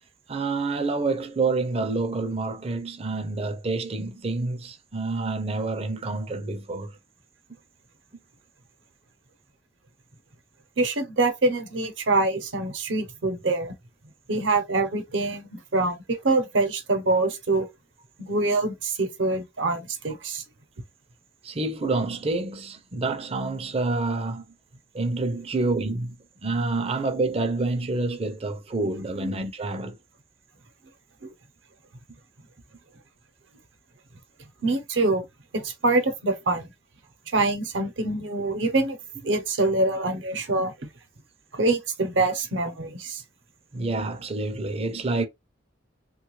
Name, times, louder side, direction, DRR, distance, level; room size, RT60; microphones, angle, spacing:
voice 1, 0.3-7.0 21.4-24.5 24.9-26.2 26.4-30.0 43.7-45.3, right 3 dB, 30° right, 0.5 m, -28 dB
voice 2, 10.8-13.7 14.3-17.7 18.2-20.4 29.2-29.4 31.2-31.3 34.6-35.2 35.5-36.7 37.3-39.0 39.2-40.9 41.5-43.2, right 2 dB, 75° right, 0.7 m, -25 dB
3.0 x 2.3 x 3.1 m
head